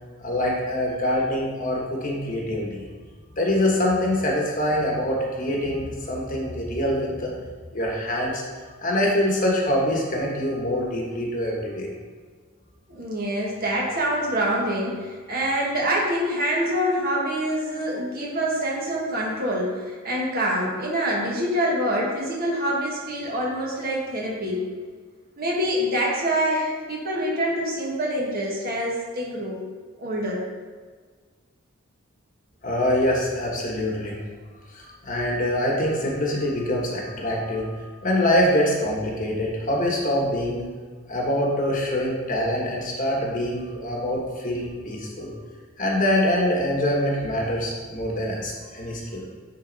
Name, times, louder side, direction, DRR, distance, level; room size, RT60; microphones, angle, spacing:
voice 1, 0.2-2.9 3.4-7.3 7.7-8.4 8.8-11.9 32.6-34.2 34.7-40.7 41.1-45.4 45.8-49.3, left 1 dB, 40° left, -2 dB, 1.3 m, -24 dB
voice 2, 12.9-24.6 25.4-29.6 30.0-30.4, equal, 45° right, -3 dB, 1.5 m, -25 dB
9.2 x 4.0 x 4.0 m, 1.5 s
head